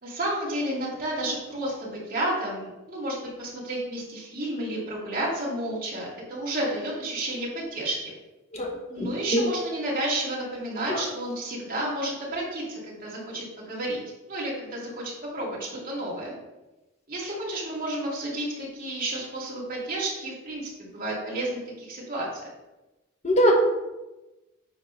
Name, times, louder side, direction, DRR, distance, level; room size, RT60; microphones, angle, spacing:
voice 1, 0.0-8.1 8.9-14.0 14.3-16.4 17.1-22.3, right 1 dB, 45° right, -5 dB, 2.8 m, -31 dB
voice 2, 9.0-9.4 10.9-11.0 23.2-23.5, equal, 30° left, 0 dB, 1.1 m, -22 dB
9.5 x 3.7 x 5.6 m, 1.0 s
head